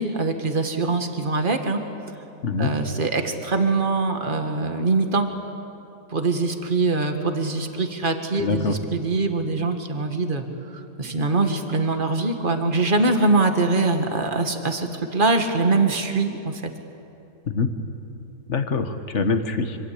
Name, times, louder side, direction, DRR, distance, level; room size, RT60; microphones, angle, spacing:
voice 1, 0.0-1.8 2.6-5.3 6.1-10.4 10.7-16.6, right 3 dB, 35° right, 6 dB, 2.0 m, -23 dB
voice 2, 8.4-8.8 17.5-17.7 18.5-19.8, left 4 dB, 50° left, 8 dB, 1.7 m, -24 dB
26.5 x 25.5 x 8.6 m, 2.7 s
omnidirectional pair, 1.7 m